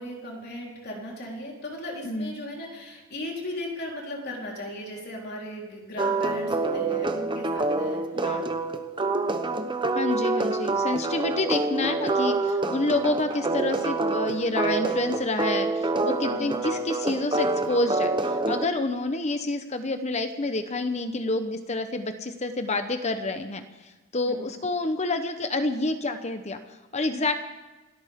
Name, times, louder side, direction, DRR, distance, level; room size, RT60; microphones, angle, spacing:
voice 1, 0.0-8.4 16.3-16.6 24.3-24.6, left 1 dB, 45° left, -2 dB, 3.9 m, -37 dB
sound 1, 6.0-18.7, right 3 dB, 20° right, 0.9 m, -27 dB
voice 2, 8.1-8.5 9.9-27.3, left 2 dB, 30° left, 8 dB, 0.9 m, -28 dB
29.0 x 13.0 x 3.7 m, 1.2 s
head